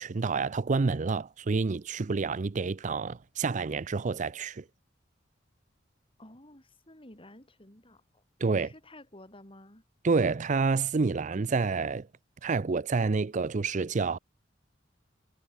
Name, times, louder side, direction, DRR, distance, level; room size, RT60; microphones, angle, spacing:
voice 1, 0.0-4.6 8.4-8.7 10.0-12.1 12.4-14.2, right 4 dB, 40° right, 0.5 m, -28 dB
voice 2, 6.2-8.2 8.5-9.8, left 1 dB, 30° left, 6.0 m, -52 dB
head